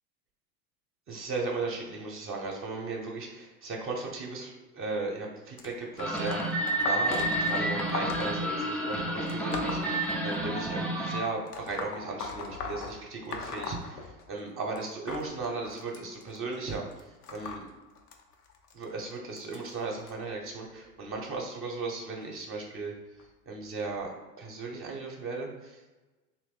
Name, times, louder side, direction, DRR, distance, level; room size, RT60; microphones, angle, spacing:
voice 1, 1.1-17.7 18.7-22.9 23.5-26.0, right 3 dB, 30° right, -1 dB, 0.7 m, -36 dB
sound 1, 5.6-10.7 11.5-14.5 14.8-20.1 20.9-21.2 22.2-22.3 23.2-23.3 24.0-24.1, left 4 dB, 85° left, 0.6 m, -40 dB
sound 2, 6.0-11.2, right 1 dB, ahead, 0.4 m, -30 dB
2.9 x 2.6 x 3.7 m, 1.2 s
hypercardioid pair, 90°, 45 cm